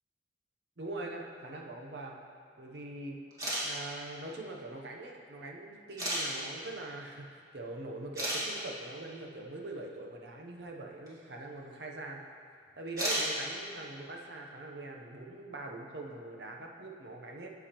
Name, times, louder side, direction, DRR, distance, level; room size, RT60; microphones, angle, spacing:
voice 1, 0.8-2.2 2.6-3.2 3.6-12.2 12.8-17.5, right 2 dB, 70° right, 1 dB, 0.8 m, -43 dB
sound 1, 3.3-3.6 4.7-4.8 6.0-6.2 7.6-7.7 8.1-8.4 11.1-11.2 12.9-13.3, right 1 dB, 20° right, 1.8 m, -32 dB
9.1 x 7.0 x 3.0 m, 2.3 s
head